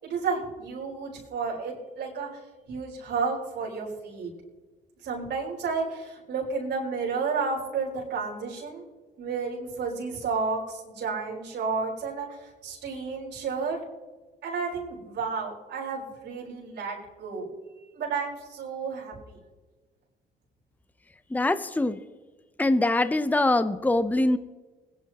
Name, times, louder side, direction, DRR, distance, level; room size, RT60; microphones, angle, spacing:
voice 1, 0.0-2.4 2.7-4.3 5.0-8.8 9.2-13.8 14.4-17.5 17.9-19.4, right 4 dB, 70° right, -5 dB, 5.0 m, -32 dB
voice 2, 21.3-22.0 22.6-24.4, left 2 dB, 10° left, 12 dB, 0.7 m, -23 dB
21.0 x 10.0 x 3.0 m, 1.3 s
supercardioid pair, 70°, 18 cm